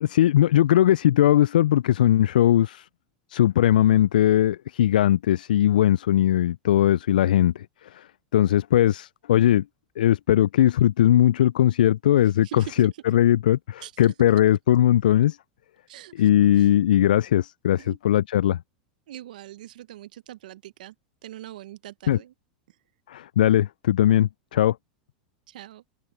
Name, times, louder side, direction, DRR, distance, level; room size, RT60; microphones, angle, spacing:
voice 1, 0.0-2.9 3.3-8.1 8.3-9.6 10.0-15.4 16.2-18.6 22.1-22.2 23.1-24.8, left 12 dB, 75° left, 0.3 m, -20 dB
voice 2, 12.2-13.0 13.8-14.1 15.9-16.7 17.8-18.0 19.1-20.9 21.2-22.3 22.7-22.8 25.5-25.8, right 13 dB, 70° right, 0.9 m, -42 dB
hypercardioid pair, 95°, 5 cm